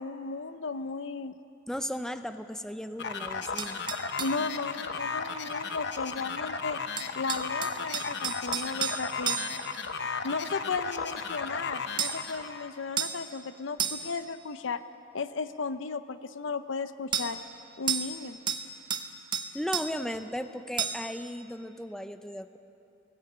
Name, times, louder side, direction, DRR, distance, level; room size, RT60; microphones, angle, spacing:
voice 1, 0.0-1.3 4.2-6.8 7.2-9.4 10.2-14.8 15.1-17.4 17.8-18.4, left 4 dB, 75° left, 12 dB, 0.7 m, -35 dB
voice 2, 1.7-3.8 19.5-22.6, equal, 5° left, 9 dB, 0.6 m, -36 dB
sound 1, 3.0-12.7, left 5 dB, 60° left, 1.0 m, -35 dB
sound 2, 3.6-4.4 7.0-9.7 12.0-12.3 13.0-13.2 13.8-14.2 17.1-17.3 17.9-18.2 18.5-19.1 19.3-19.9 20.8-21.1, right 7 dB, 25° right, 0.9 m, -32 dB
19.0 x 16.5 x 8.7 m, 2.8 s
head